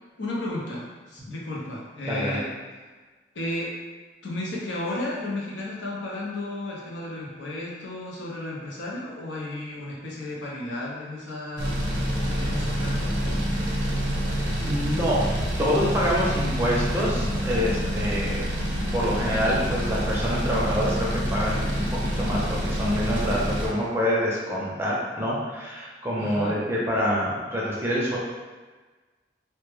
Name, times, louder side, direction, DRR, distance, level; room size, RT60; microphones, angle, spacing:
voice 1, 0.2-2.5 3.3-3.7 4.2-11.8 12.2-13.3 26.2-26.6, left 1 dB, 85° left, -4 dB, 0.6 m, -33 dB
voice 2, 2.1-2.4 14.6-15.2 15.6-18.4 18.9-28.2, equal, 15° right, -5 dB, 0.4 m, -26 dB
sound 1, 11.6-23.7, equal, 85° right, 0.5 m, -27 dB
2.1 x 2.1 x 3.1 m, 1.3 s
head